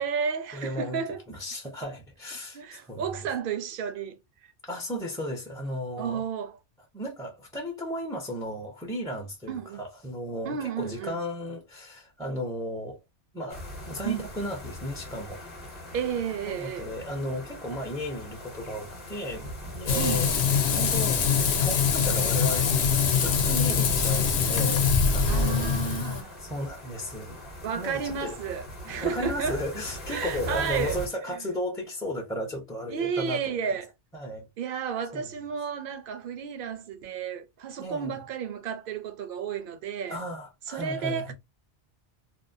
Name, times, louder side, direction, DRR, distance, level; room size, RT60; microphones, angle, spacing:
voice 1, 0.0-1.2 2.5-4.2 6.0-6.6 9.5-9.8 10.4-11.2 14.0-14.3 15.9-16.9 19.9-20.3 25.3-26.3 27.6-29.6 30.1-31.0 31.3-31.5 32.9-33.9 34.6-40.2 40.7-41.3, right 7 dB, 60° right, 0.6 m, -32 dB
voice 2, 0.5-1.0 1.3-3.1 4.7-6.2 6.9-13.0 13.3-15.4 16.5-20.3 20.6-21.2 21.5-25.9 26.4-27.4 27.8-28.3 28.8-33.6 34.1-34.5 35.1-35.3 37.8-38.1 40.1-41.3, equal, 5° left, 0.4 m, -35 dB
sound 1, 13.5-31.1, left 1 dB, 40° left, 0.9 m, -41 dB
Frying (food), 19.9-26.2, left 6 dB, 70° left, 0.8 m, -24 dB
2.6 x 2.0 x 2.5 m
omnidirectional pair, 1.2 m